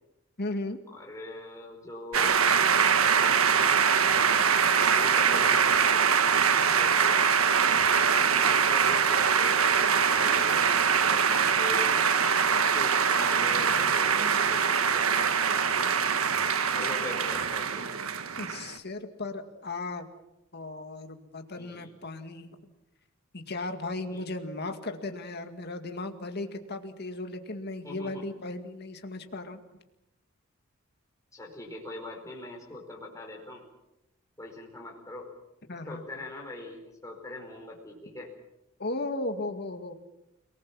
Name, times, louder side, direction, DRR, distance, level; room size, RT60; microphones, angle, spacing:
voice 1, 0.4-0.8 18.4-20.1 20.5-22.6 23.3-29.6 35.7-36.0 38.8-39.9, left 2 dB, 50° left, 6 dB, 2.1 m, -36 dB
voice 2, 0.9-2.3 2.8-4.3 4.8-7.3 7.8-11.9 12.5-15.5 16.7-17.9 21.6-21.9 24.1-24.2 27.8-28.2 31.3-33.6 34.4-35.3 35.7-38.3, left 2 dB, 15° left, -1 dB, 5.0 m, -42 dB
sound 1, 2.1-18.8, right 6 dB, 80° right, 1.5 m, -23 dB
29.5 x 19.5 x 7.3 m, 0.91 s
head